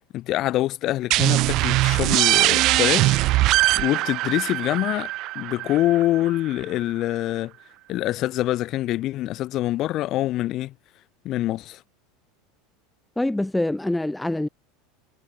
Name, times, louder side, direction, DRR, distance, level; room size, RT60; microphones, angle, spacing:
voice 1, 0.0-3.2 3.7-5.1 5.3-7.5 7.9-10.7 11.2-11.8, left 15 dB, 45° left, 6.5 m, -25 dB
sound 1, 1.1-6.6, right 18 dB, 50° right, 1.1 m, -21 dB
voice 2, 13.2-14.5, left 1 dB, 5° left, 2.1 m, -25 dB
supercardioid pair, 135°, 0 cm